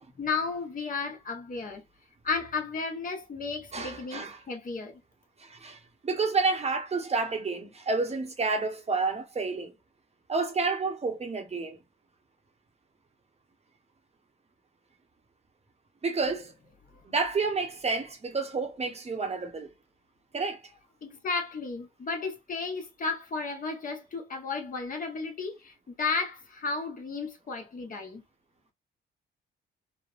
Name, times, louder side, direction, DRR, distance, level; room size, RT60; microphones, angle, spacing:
voice 1, 0.2-1.8 2.2-5.0 21.0-28.2, left 4 dB, 45° left, 1.1 m, -33 dB
voice 2, 3.7-4.4 5.4-9.7 10.3-11.8 16.0-16.5 17.1-19.7 20.3-20.6, right 4 dB, 30° right, 0.8 m, -30 dB
3.2 x 2.0 x 2.4 m
cardioid pair, 90°, 20 cm